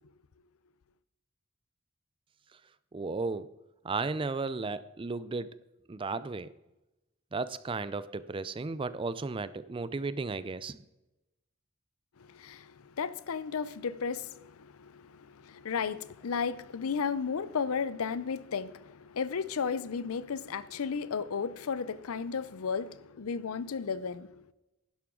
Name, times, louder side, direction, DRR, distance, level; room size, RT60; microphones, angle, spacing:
voice 1, 2.9-3.5 3.8-5.5 5.9-6.5 7.3-10.8, right 3 dB, 25° right, 0.4 m, -34 dB
voice 2, 12.2-24.4, left 6 dB, 85° left, 0.5 m, -34 dB
11.5 x 11.0 x 3.8 m
head